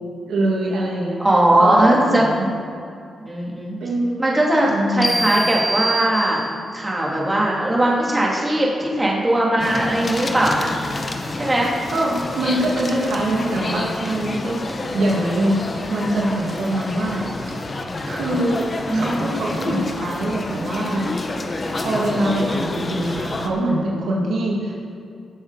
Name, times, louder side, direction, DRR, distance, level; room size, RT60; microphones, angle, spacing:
voice 1, 0.3-1.2 1.6-2.5 3.8-5.4 11.9-14.6 14.9-17.3 18.1-18.7 18.9-21.1 21.8-24.7, right 1 dB, 80° right, -4 dB, 2.5 m, -23 dB
voice 2, 1.2-2.2 3.3-3.8 4.2-6.4 6.7-10.7 11.4-11.7 18.8-19.2, right 1 dB, 20° right, -3 dB, 3.2 m, -19 dB
sound 1, 5.0-6.8, right 2 dB, 15° left, 2.3 m, -25 dB
sound 2, 9.6-23.5, left 2 dB, 45° left, 1.4 m, -28 dB
19.0 x 7.3 x 5.1 m, 2.4 s
cardioid pair, 60°, 0 cm